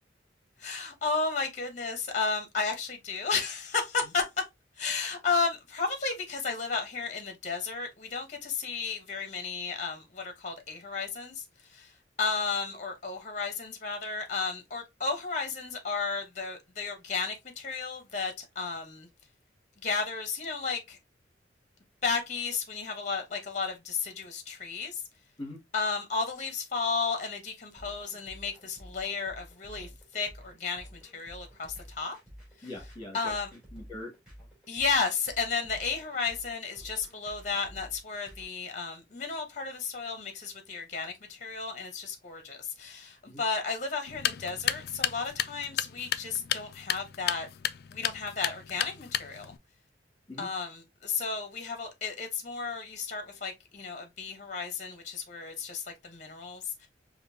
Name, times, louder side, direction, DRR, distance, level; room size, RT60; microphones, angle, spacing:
voice 1, 0.6-4.2 4.8-11.4 11.7-11.9 12.2-19.1 19.8-21.0 22.0-25.0 25.7-32.2 33.1-33.5 34.7-47.5 47.9-49.5 50.4-56.9, left 4 dB, 40° left, 0.9 m, -33 dB
sound 1, 27.8-38.4, equal, 5° right, 2.7 m, -50 dB
voice 2, 32.6-34.1 43.3-43.4 50.3-50.5, left 1 dB, 25° left, 1.5 m, -42 dB
sound 2, 44.1-49.6, left 11 dB, 60° left, 0.3 m, -33 dB
5.1 x 2.6 x 2.6 m
head